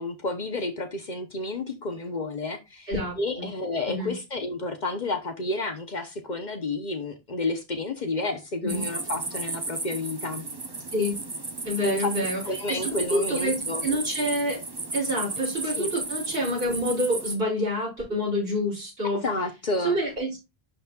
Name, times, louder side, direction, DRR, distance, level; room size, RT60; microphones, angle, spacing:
voice 1, 0.0-10.5 11.8-12.1 12.5-13.9 15.6-15.9 19.1-20.0, left 2 dB, 50° left, 5 dB, 0.9 m, -31 dB
voice 2, 2.9-3.5 3.9-4.1 8.6-8.8 10.9-11.1 11.6-12.4 12.7-14.6 14.9-19.2 19.8-20.4, equal, 65° right, -6 dB, 4.5 m, -27 dB
sound 1, 8.7-17.4, right 3 dB, 25° right, 0.7 m, -34 dB
11.0 x 4.1 x 2.3 m, 0.24 s
omnidirectional pair, 1.1 m